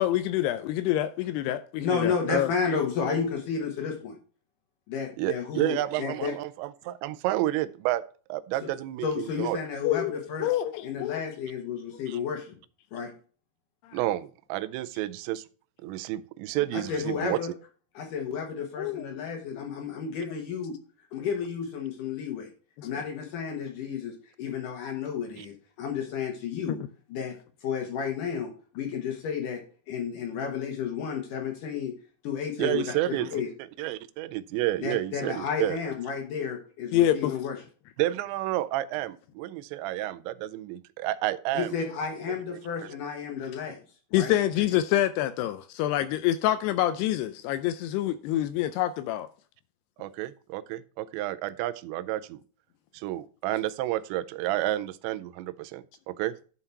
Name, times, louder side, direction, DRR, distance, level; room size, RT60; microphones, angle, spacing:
voice 1, 0.0-2.5 9.8-10.1 10.4-11.2 13.9-14.0 18.8-19.1 19.6-19.7 22.8-22.9 26.7-26.8 36.9-37.3 44.1-49.3, left 13 dB, 80° left, 2.4 m, -26 dB
voice 2, 1.8-4.2 4.9-6.3 8.6-8.7 9.0-10.5 10.8-12.5 12.9-13.1 16.7-17.5 17.9-20.7 21.1-22.5 22.8-26.8 27.1-27.3 27.6-29.6 29.9-31.9 32.2-33.5 34.8-37.6 41.5-43.8 44.1-44.3, left 6 dB, 65° left, 2.4 m, -32 dB
voice 3, 5.2-8.0 8.3-9.6 12.1-12.2 13.9-15.4 15.8-17.4 25.4-25.5 32.6-33.3 33.8-35.8 38.0-41.8 42.8-42.9 50.0-52.4 52.9-56.3, right 15 dB, 90° right, 2.9 m, -30 dB
11.0 x 5.7 x 4.6 m
omnidirectional pair, 5.0 m